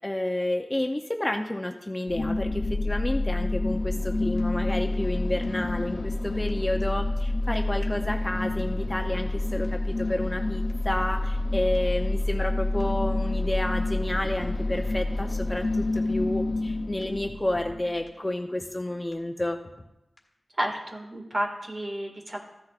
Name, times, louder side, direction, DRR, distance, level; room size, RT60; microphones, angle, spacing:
voice 1, 0.0-19.6, left 1 dB, 15° left, 4 dB, 0.6 m, -30 dB
sound 1, 2.1-18.0, left 2 dB, 50° left, 0.9 m, -28 dB
sound 2, 4.4-4.5 4.6-5.2 5.4-5.5 6.0-6.1 6.5-6.6 6.7-7.3 7.5-7.6 8.1-8.2 8.6-8.7 8.9-9.4 9.6-9.7 10.2-10.3 10.7-11.5 11.7-11.8 12.3-12.4 12.8-12.9 13.1-13.6 13.9-14.0 14.4-14.5 14.9-15.0 15.2-15.7 16.0-16.1 16.5-16.6 17.0-17.1 17.3-17.8 18.1-18.2 18.6-18.7 19.1-19.2 19.4-19.9 20.2-20.3, left 1 dB, 35° left, 1.7 m, -49 dB
voice 2, 20.6-22.4, right 1 dB, 35° right, 1 dB, 1.9 m, -31 dB
15.0 x 10.0 x 2.5 m, 0.94 s
wide cardioid pair, 80°, 0 cm